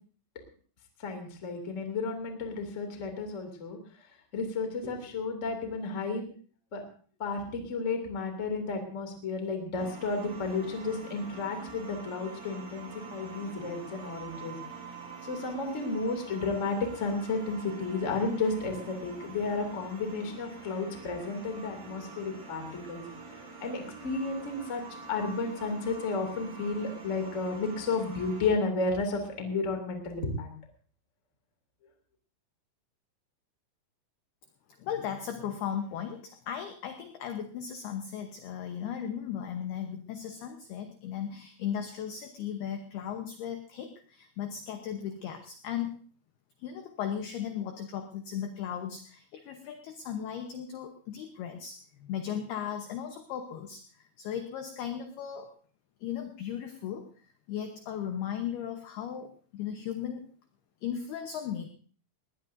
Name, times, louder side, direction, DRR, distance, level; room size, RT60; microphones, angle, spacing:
voice 1, 1.0-3.8 4.3-6.2 6.7-6.8 7.2-14.5 15.2-22.6 22.9-23.0 23.6-24.8 25.1-30.5, left 3 dB, 30° left, 3 dB, 1.4 m, -32 dB
sound 1, 9.8-28.5, right 4 dB, 80° right, 8.6 m, -46 dB
voice 2, 34.8-46.0 46.6-55.6 56.0-57.1 57.5-60.3 60.8-61.7, left 9 dB, 80° left, 6 dB, 2.3 m, -36 dB
20.0 x 18.5 x 2.7 m, 0.41 s
omnidirectional pair, 5.9 m